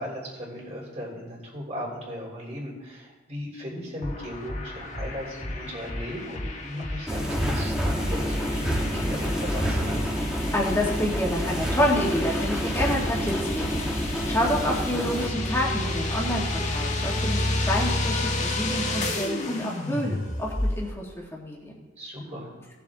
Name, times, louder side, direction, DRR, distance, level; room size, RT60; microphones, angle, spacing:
voice 1, 0.0-10.0 22.0-22.6, equal, 35° right, -3 dB, 3.4 m, -36 dB
sound 1, 4.0-20.9, left 1 dB, 35° left, 1.3 m, -30 dB
sound 2, 7.1-15.3, equal, 5° right, 1.3 m, -29 dB
voice 2, 10.5-13.8 14.3-21.8, equal, 10° left, -3 dB, 2.0 m, -28 dB
17.5 x 7.1 x 3.7 m, 1.3 s
head